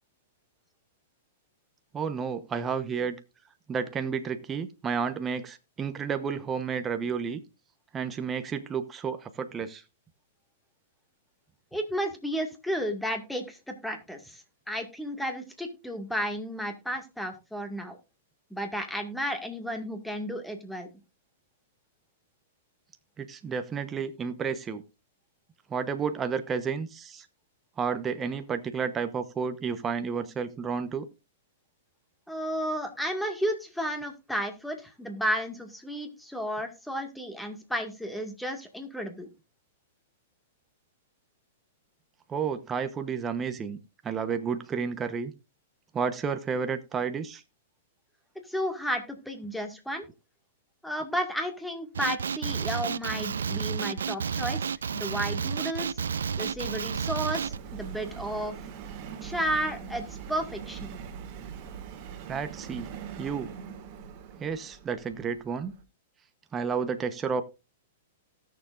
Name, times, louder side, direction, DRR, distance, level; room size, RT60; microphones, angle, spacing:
voice 1, 1.9-3.2 3.7-7.4 7.9-9.8 23.2-24.8 25.7-27.3 27.8-31.1 42.3-43.8 44.0-45.3 45.9-47.4 62.3-62.9 63.2-63.5 64.4-65.7 66.5-67.4, right 6 dB, 20° right, 8 dB, 0.9 m, -31 dB
voice 2, 11.7-14.4 14.7-18.0 18.5-20.9 32.3-39.3 48.4-50.0 50.8-54.6 54.9-56.0 56.4-58.5 59.2-61.0, equal, ahead, 4 dB, 1.9 m, -33 dB
Male speech man speaking, 51.9-57.6, right 6 dB, 90° right, 0.4 m, -31 dB
Subway metro underground, 54.7-65.8, right 7 dB, 45° right, 1.9 m, -43 dB
18.0 x 6.9 x 2.5 m, 0.28 s
hypercardioid pair, 130°, 0 cm